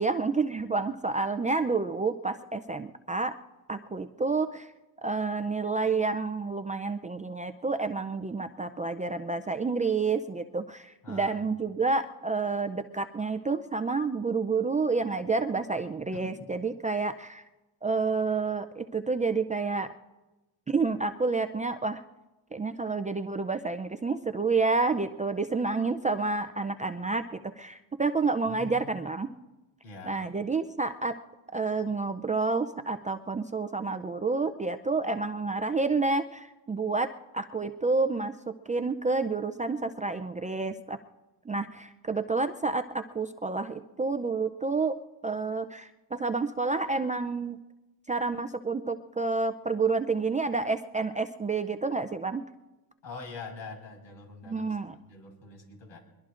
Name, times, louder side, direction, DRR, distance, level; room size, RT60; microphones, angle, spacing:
voice 1, 0.0-3.4 3.7-4.7 5.0-17.4 17.8-19.9 20.7-22.0 22.5-29.3 30.0-31.2 31.5-38.3 38.7-41.0 41.5-45.0 45.2-47.6 48.1-52.4 54.4-54.9, right 4 dB, 15° right, 8 dB, 0.4 m, -29 dB
voice 2, 11.0-11.4 16.1-16.5 28.4-29.0 29.8-30.2 53.0-56.0, left 3 dB, 70° left, 1 dB, 4.9 m, -44 dB
22.5 x 22.0 x 2.5 m, 1.1 s
cardioid pair, 115°, 46 cm